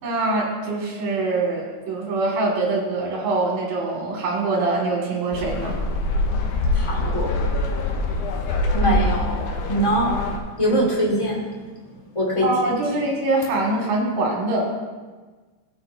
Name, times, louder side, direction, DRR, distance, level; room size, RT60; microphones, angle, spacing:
voice 1, 0.0-5.8 12.4-14.8, right 2 dB, 75° right, -2 dB, 3.7 m, -24 dB
sound 1, 5.3-10.4, left 2 dB, 75° left, 2.2 m, -24 dB
voice 2, 6.7-7.5 8.7-10.1 10.6-11.4 12.1-12.5, right 1 dB, 15° left, -4 dB, 1.1 m, -22 dB
16.0 x 7.0 x 2.7 m, 1.3 s
omnidirectional pair, 3.8 m